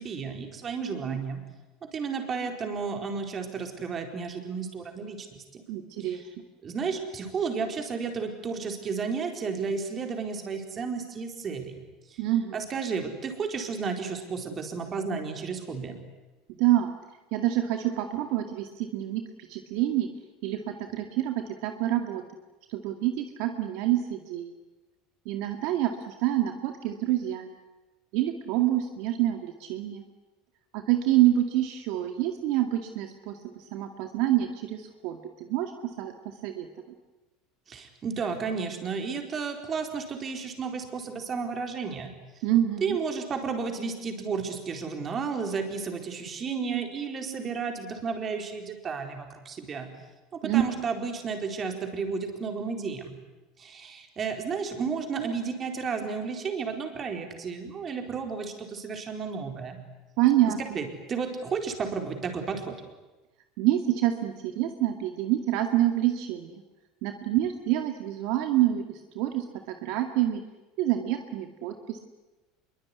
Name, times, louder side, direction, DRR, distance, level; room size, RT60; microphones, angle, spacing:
voice 1, 0.0-1.4 1.9-5.6 6.0-6.2 6.6-11.8 12.1-12.2 12.5-16.0 37.7-42.1 42.8-49.9 50.3-53.1 53.6-59.8 60.5-62.8, right 5 dB, 25° right, 4 dB, 4.4 m, -32 dB
voice 2, 2.4-2.8 5.7-6.2 12.2-12.6 16.6-16.9 17.3-19.2 19.5-20.1 20.4-22.2 22.7-24.5 25.3-27.6 28.1-30.0 30.7-33.4 33.7-36.1 36.4-36.7 42.4-43.0 46.6-46.9 47.2-47.4 50.4-50.8 55.2-55.3 60.2-60.6 63.6-66.6 67.0-70.4 70.8-72.0, right 13 dB, 60° right, 5 dB, 2.2 m, -27 dB
26.5 x 23.0 x 9.8 m, 1.1 s
supercardioid pair, 145°, 0 cm